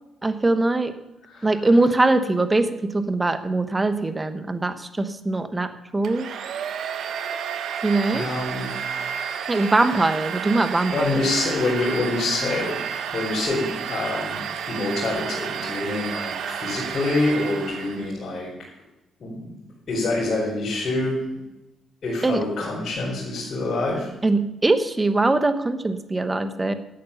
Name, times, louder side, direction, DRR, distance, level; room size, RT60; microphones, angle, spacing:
voice 1, 0.2-0.9 1.4-6.3 7.8-8.3 9.5-11.2 22.2-22.4 24.2-26.7, right 2 dB, 20° right, 10 dB, 1.1 m, -22 dB
Domestic sounds home sounds, 6.0-18.1, right 7 dB, 70° right, 1.0 m, -31 dB
voice 2, 8.1-9.1 9.5-9.7 10.9-18.5 19.2-19.5 19.9-21.2 22.0-24.1, left 2 dB, 50° left, -7 dB, 4.6 m, -26 dB
12.0 x 8.5 x 6.9 m, 0.96 s
cardioid pair, 90°, 0 cm